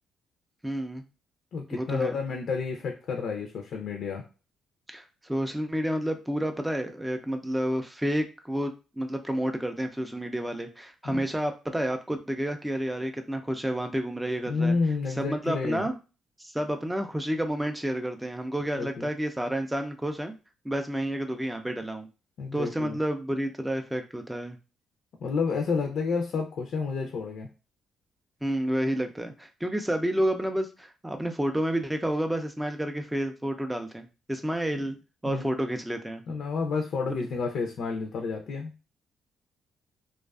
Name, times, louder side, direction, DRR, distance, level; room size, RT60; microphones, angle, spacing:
voice 1, 0.6-1.0 1.7-2.1 4.9-14.8 15.2-15.9 16.4-20.3 20.6-22.1 22.5-24.6 28.4-35.0 35.2-36.2 37.1-37.2, right 1 dB, 5° right, 5 dB, 0.3 m, -30 dB
voice 2, 1.5-4.2 11.0-11.3 14.5-15.9 18.8-19.1 22.4-23.0 25.2-27.5 34.7-34.8 35.2-35.6 36.3-38.7, left 4 dB, 70° left, 2 dB, 0.4 m, -30 dB
2.4 x 2.3 x 2.3 m, 0.32 s
cardioid pair, 90°, 0 cm